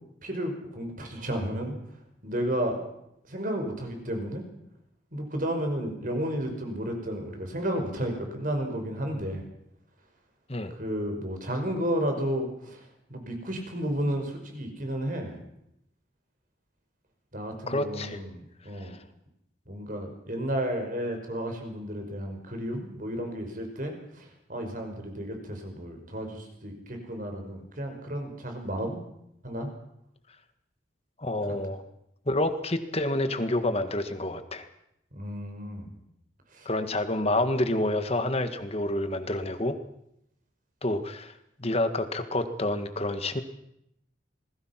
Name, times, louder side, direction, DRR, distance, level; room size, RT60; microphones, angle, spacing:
voice 1, 0.2-1.8 2.2-2.8 3.3-4.5 5.1-9.4 10.8-12.8 13.1-15.4 17.3-19.0 19.7-29.0 29.4-29.7 35.1-35.9 36.5-36.7, equal, 45° right, 4 dB, 5.5 m, -32 dB
voice 2, 17.7-18.2 18.8-19.0 31.2-31.8 32.2-34.7 36.6-39.8 40.8-41.3 41.6-43.4, left 1 dB, 30° left, 9 dB, 1.8 m, -28 dB
28.0 x 21.0 x 6.0 m, 0.79 s
head